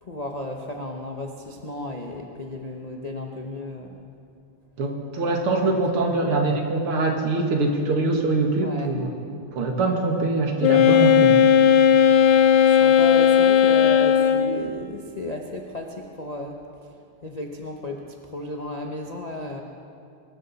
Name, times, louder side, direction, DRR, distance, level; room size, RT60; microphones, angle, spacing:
voice 1, 0.0-4.0 5.7-6.4 8.6-9.0 11.6-11.8 12.7-16.6 17.2-19.6, left 1 dB, 40° left, 1 dB, 0.5 m, -34 dB
voice 2, 4.8-9.1 9.5-11.4, right 3 dB, 80° right, 2 dB, 2.6 m, -23 dB
Wind instrument woodwind instrument, 10.6-14.7, left 8 dB, 90° left, 1.7 m, -16 dB
23.0 x 13.5 x 4.2 m, 2.5 s
omnidirectional pair, 2.4 m